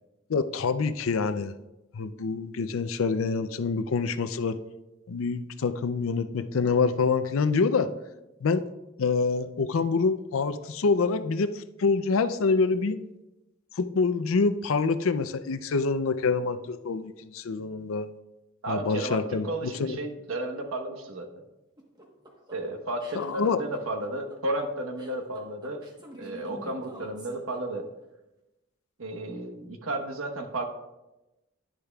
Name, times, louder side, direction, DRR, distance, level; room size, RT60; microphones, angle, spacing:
voice 1, 0.3-1.5 1.9-4.6 5.1-7.9 8.4-8.6 9.0-13.0 13.8-18.1 18.7-19.5 19.8-20.0 23.2-23.6, left 4 dB, 85° left, 12 dB, 0.5 m, -26 dB
voice 2, 18.6-21.3 22.5-25.9 26.2-27.8 29.0-30.7, right 1 dB, 85° right, 5 dB, 1.1 m, -33 dB
sound 1, 21.8-28.0, equal, 20° right, 1.2 m, -46 dB
10.5 x 10.0 x 2.3 m, 1.0 s
head